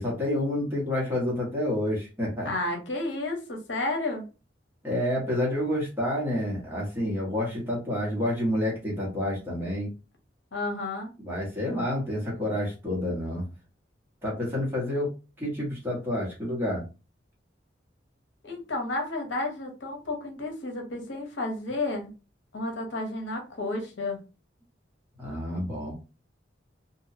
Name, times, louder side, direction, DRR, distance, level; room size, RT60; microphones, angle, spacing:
voice 1, 0.0-2.5 4.8-9.9 11.2-13.4 14.2-15.1 15.4-16.8 25.2-25.9, left 1 dB, 10° right, 1.0 m, -29 dB
voice 2, 2.4-4.3 10.5-11.1 18.4-22.1 22.5-24.2, left 2 dB, 80° left, 0.8 m, -31 dB
2.8 x 2.2 x 2.5 m
head